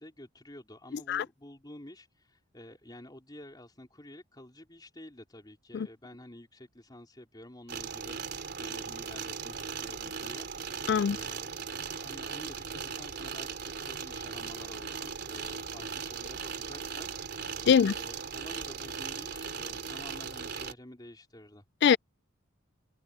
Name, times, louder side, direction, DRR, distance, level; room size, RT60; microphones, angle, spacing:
voice 1, 0.0-11.6 12.0-21.6, left 1 dB, 20° left, 3.8 m, -50 dB
voice 2, 1.1-1.2 5.7-5.9 10.9-11.2 17.7-17.9 21.8-22.0, left 7 dB, 55° left, 0.3 m, -22 dB
sound 1, 7.7-20.7, right 6 dB, 55° right, 3.5 m, -38 dB
head